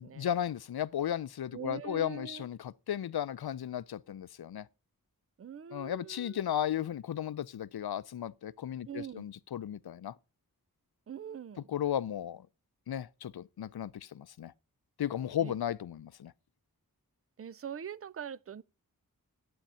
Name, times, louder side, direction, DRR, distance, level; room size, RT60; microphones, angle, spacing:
voice 1, 0.0-4.7 5.7-10.1 11.7-12.5 12.9-14.5 15.0-16.3, left 10 dB, 90° left, 0.5 m, -35 dB
voice 2, 1.5-2.5 5.4-6.7 8.9-9.2 11.1-11.7 15.4-15.5 17.4-18.6, right 8 dB, 40° right, 0.5 m, -43 dB
12.0 x 8.7 x 5.6 m
wide cardioid pair, 85°, 37 cm